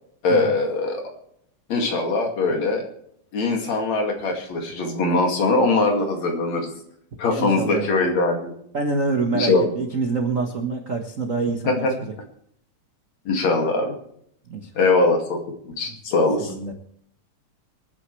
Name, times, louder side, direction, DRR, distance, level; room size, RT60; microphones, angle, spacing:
voice 1, 0.2-1.0 1.7-2.8 3.3-6.7 7.2-8.5 9.3-9.7 11.7-11.9 13.3-14.0 14.8-15.4 15.7-16.5, left 3 dB, 60° left, 2 dB, 3.5 m, -21 dB
voice 2, 7.4-8.0 8.7-12.1 14.5-14.7 16.4-16.7, right 3 dB, 65° right, 3 dB, 0.7 m, -26 dB
25.5 x 9.6 x 3.3 m, 0.69 s
omnidirectional pair, 3.7 m